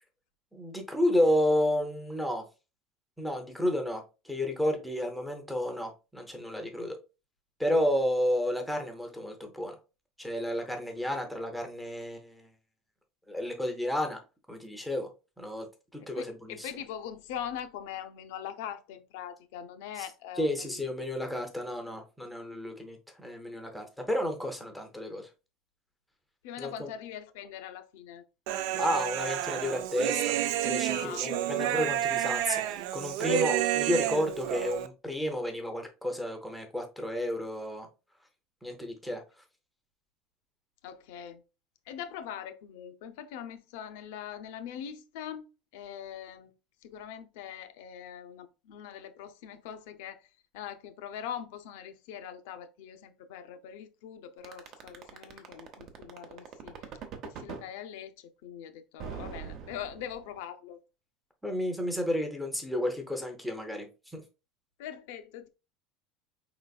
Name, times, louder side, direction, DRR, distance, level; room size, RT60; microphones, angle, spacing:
voice 1, 0.5-2.4 3.2-7.0 7.6-9.7 10.2-12.5 13.3-14.2 14.5-15.1 15.4-15.7 15.9-16.7 20.0-20.1 20.4-25.3 26.6-26.9 28.7-37.9 38.6-39.2 61.4-64.2, left 1 dB, ahead, 0.7 m, -31 dB
voice 2, 16.0-21.4 26.4-28.2 30.9-31.6 40.8-41.4 41.9-45.4 45.7-46.5 46.8-50.3 50.5-56.9 57.2-60.8 64.8-65.5, left 9 dB, 75° left, 0.6 m, -42 dB
Human voice, 28.5-34.9, right 12 dB, 60° right, 0.4 m, -30 dB
sound 1, 54.4-57.7 59.0-60.4, right 7 dB, 35° right, 0.7 m, -41 dB
5.0 x 3.9 x 2.3 m
cardioid pair, 180°, 0 cm